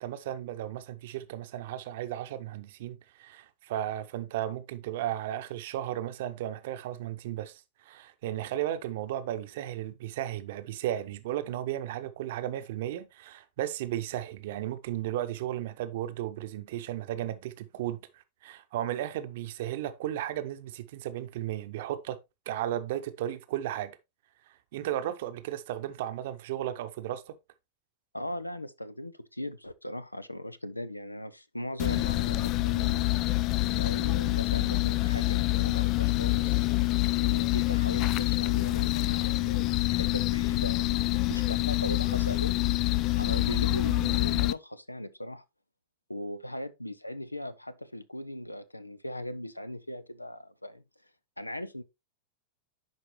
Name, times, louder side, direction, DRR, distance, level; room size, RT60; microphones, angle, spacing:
voice 1, 0.0-22.2 22.5-24.0 24.7-27.4, right 12 dB, 55° right, 0.8 m, -35 dB
voice 2, 28.1-33.1 33.7-36.5 37.2-42.6 43.1-45.4 46.1-50.8 51.4-51.8, left 1 dB, 85° left, 0.5 m, -39 dB
sound 1, 31.8-44.5, left 20 dB, 40° left, 0.3 m, -26 dB
10.5 x 4.6 x 3.1 m
figure-of-eight pair, 90°, 0 cm